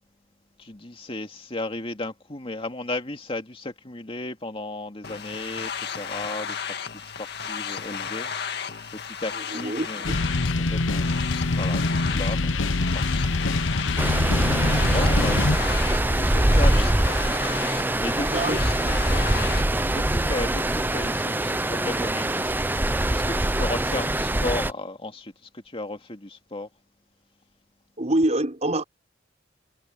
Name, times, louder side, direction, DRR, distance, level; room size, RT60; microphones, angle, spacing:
voice 1, 0.6-6.7 7.0-10.0 10.6-13.5 13.9-15.4 15.7-17.2 17.6-18.6 19.1-19.2 19.9-26.7, left 2 dB, 30° left, 2.5 m, -35 dB
sound 1, 5.0-19.6, left 7 dB, 60° left, 1.9 m, -34 dB
voice 2, 9.3-10.0 18.3-19.0 28.0-28.8, right 1 dB, 35° right, 5.1 m, -26 dB
sound 2, 10.0-16.0, left 2 dB, 85° left, 1.0 m, -25 dB
Stream, 14.0-24.7, right 1 dB, 10° right, 0.7 m, -23 dB
head